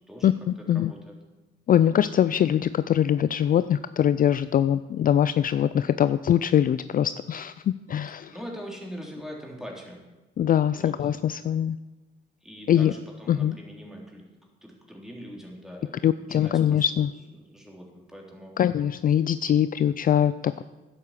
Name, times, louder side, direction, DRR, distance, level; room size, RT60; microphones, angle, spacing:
voice 1, 0.2-0.9 1.7-8.4 10.4-11.8 12.7-12.9 13.3-13.6 16.0-17.1 18.6-20.6, left 10 dB, 45° left, 14 dB, 0.4 m, -23 dB
voice 2, 0.7-1.1 8.1-10.0 10.7-10.9 12.4-14.3 14.6-16.8 17.5-18.6, equal, ahead, -1 dB, 3.4 m, -42 dB
11.0 x 8.4 x 7.3 m, 1.1 s
cardioid pair, 90°, 20 cm